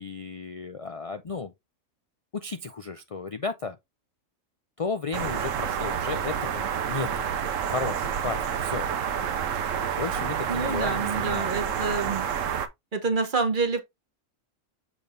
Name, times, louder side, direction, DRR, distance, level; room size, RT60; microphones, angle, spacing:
voice 1, 0.0-1.5 2.3-3.8 4.8-7.3 7.7-8.9 10.0-11.6, left 4 dB, 50° left, 0.4 m, -34 dB
sound 1, 5.1-12.7, right 8 dB, 75° right, 1.1 m, -29 dB
voice 2, 10.5-12.3 12.9-13.8, right 4 dB, 40° right, 1.1 m, -27 dB
7.2 x 3.4 x 3.9 m
omnidirectional pair, 1.4 m